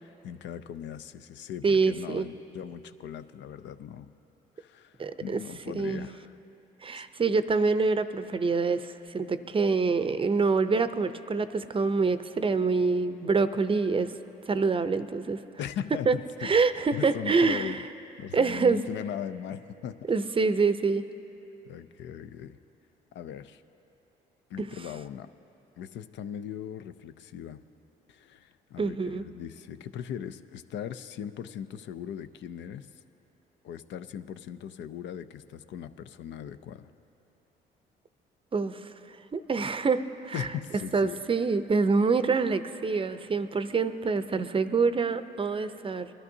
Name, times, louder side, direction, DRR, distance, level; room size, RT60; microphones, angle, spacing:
voice 1, 0.0-4.1 4.6-6.4 7.0-7.1 15.6-16.5 16.9-17.8 18.2-20.1 21.7-22.6 23.1-23.6 24.5-25.3 25.8-27.6 28.1-32.9 33.6-36.9 40.3-41.2, left 9 dB, 70° left, 12 dB, 0.5 m, -39 dB
voice 2, 1.6-2.3 5.0-5.4 5.7-6.1 6.8-14.1 14.5-15.4 16.1-16.2 16.4-17.8 18.3-18.8 20.1-21.0 24.6-24.7 28.8-29.2 38.5-38.9 39.3-40.5 40.9-46.1, right 4 dB, 30° right, 12 dB, 0.5 m, -26 dB
21.0 x 12.0 x 2.7 m, 3.0 s
supercardioid pair, 70°, 19 cm